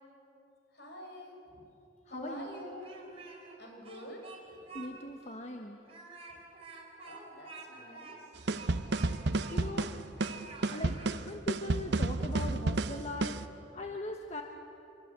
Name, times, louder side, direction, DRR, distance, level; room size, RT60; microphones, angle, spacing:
voice 1, 0.7-1.7 2.1-2.9 3.6-4.2 4.5-4.7 7.0-8.1 8.4-8.7 10.3-10.8, left 1 dB, 65° left, 1 dB, 5.7 m, -47 dB
voice 2, 2.1-2.5 4.7-5.8 9.5-10.0 10.3-10.4 10.7-11.0 11.2-14.4, left 2 dB, 40° left, 3 dB, 1.2 m, -40 dB
Speech, 2.6-3.5 3.8-4.9 5.2-5.3 5.8-9.9 10.2-11.1, right 4 dB, 35° right, 4.5 m, -49 dB
sound 1, 8.5-13.5, right 2 dB, 65° right, 0.8 m, -31 dB
25.5 x 23.0 x 8.2 m, 3.0 s
head